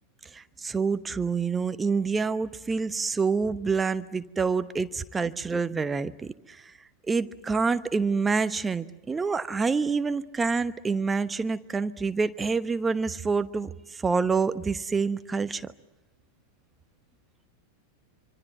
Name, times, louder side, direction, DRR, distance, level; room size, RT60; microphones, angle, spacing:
voice 1, 0.3-6.6 7.1-15.6, right 4 dB, 15° right, 13 dB, 1.0 m, -27 dB
26.0 x 25.5 x 7.9 m, 0.98 s
figure-of-eight pair, 90°, 0 cm